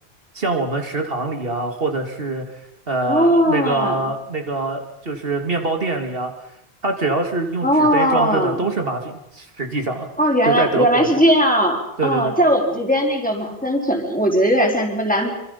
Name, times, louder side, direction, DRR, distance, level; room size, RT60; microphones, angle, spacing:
voice 1, 0.3-2.6 2.9-6.3 6.8-10.1 10.5-11.1 12.0-12.3, right 2 dB, 65° right, 4 dB, 2.4 m, -24 dB
voice 2, 3.1-4.0 7.6-8.6 10.2-15.3, equal, 10° left, 0 dB, 4.4 m, -18 dB
26.0 x 25.5 x 5.7 m, 0.81 s
omnidirectional pair, 1.1 m